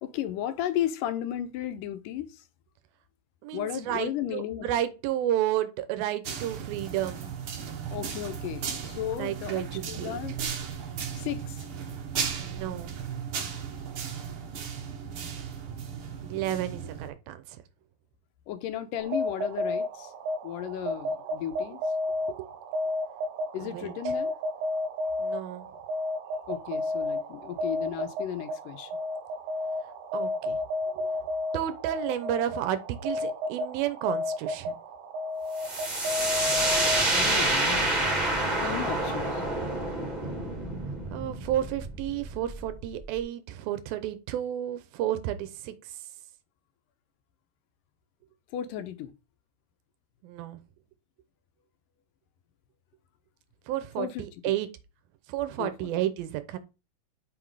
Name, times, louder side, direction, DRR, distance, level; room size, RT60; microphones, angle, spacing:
voice 1, 0.0-2.4 3.5-4.7 7.9-10.4 11.1-11.7 16.8-16.9 18.5-20.1 20.4-21.8 23.5-24.3 26.5-28.9 37.1-37.9 38.6-39.4 48.5-49.1 54.0-54.3 55.6-55.9, left 11 dB, 80° left, 2.2 m, -34 dB
voice 2, 3.4-7.4 9.2-10.2 12.4-13.0 16.2-17.6 22.3-22.5 23.6-23.9 25.2-25.7 30.1-30.6 30.9-31.1 31.5-34.7 41.1-45.7 50.2-50.6 53.7-54.7 55.3-56.6, right 12 dB, 90° right, 2.7 m, -31 dB
sound 1, 6.2-17.1, right 7 dB, 55° right, 1.6 m, -36 dB
sound 2, 19.0-37.5, left 2 dB, 70° right, 2.1 m, -32 dB
sound 3, 35.6-43.2, right 2 dB, 15° right, 1.7 m, -28 dB
6.0 x 5.9 x 4.7 m
omnidirectional pair, 4.1 m